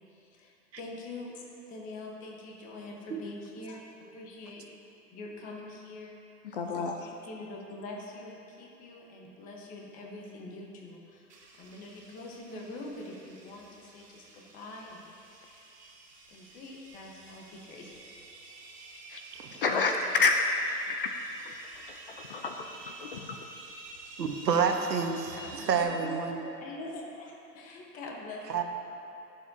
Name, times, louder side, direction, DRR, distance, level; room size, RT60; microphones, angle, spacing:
voice 1, 0.1-1.4 1.7-4.7 5.1-6.1 6.5-15.0 15.4-15.6 16.3-17.9 24.5-24.9 25.3-28.6, left 2 dB, 15° left, -1 dB, 1.1 m, -44 dB
voice 2, 6.4-7.0 19.1-19.2 19.6-20.4 20.9-21.1 21.5-21.6 21.9-23.4, left 4 dB, 35° left, 4 dB, 0.5 m, -29 dB
sound 1, 11.3-25.8, right 2 dB, 15° right, 1.2 m, -50 dB
voice 3, 24.2-25.3 25.7-26.4 28.5-28.6, right 6 dB, 85° right, 5 dB, 1.2 m, -28 dB
21.0 x 7.3 x 2.7 m, 2.8 s
hypercardioid pair, 140°, 48 cm